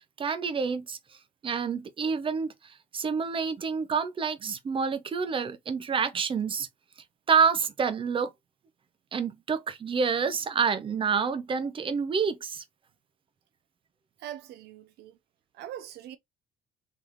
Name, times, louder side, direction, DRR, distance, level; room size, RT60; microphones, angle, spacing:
voice 1, 0.2-1.0 1.4-6.7 7.3-8.3 9.1-12.6, right 6 dB, 30° right, 0.8 m, -28 dB
voice 2, 14.2-15.2 15.5-16.2, right 11 dB, 80° right, 0.7 m, -42 dB
4.0 x 3.5 x 3.0 m
cardioid pair, 110°, 17 cm